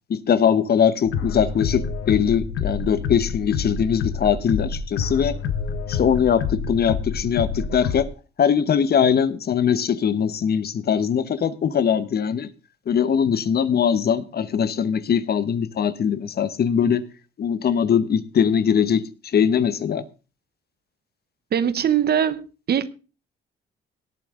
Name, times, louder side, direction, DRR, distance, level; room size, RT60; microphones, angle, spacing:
voice 1, 0.1-5.4 5.9-8.1 8.4-12.5 12.9-17.0 17.4-19.0 19.3-20.0, left 7 dB, 50° left, 1.1 m, -21 dB
sound 1, 1.0-8.0, left 6 dB, 90° left, 1.2 m, -28 dB
voice 2, 21.5-22.9, right 9 dB, 55° right, 1.0 m, -22 dB
18.0 x 8.6 x 3.8 m
cardioid pair, 90°, 20 cm